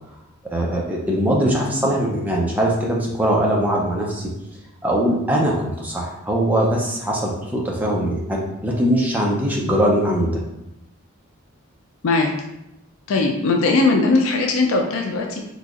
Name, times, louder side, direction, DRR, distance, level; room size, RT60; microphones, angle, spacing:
voice 1, 0.5-4.3 4.8-10.4, right 1 dB, 5° right, -3 dB, 0.4 m, -21 dB
voice 2, 13.1-15.4, left 3 dB, 70° left, 3 dB, 0.4 m, -19 dB
4.0 x 2.8 x 2.4 m, 0.86 s
head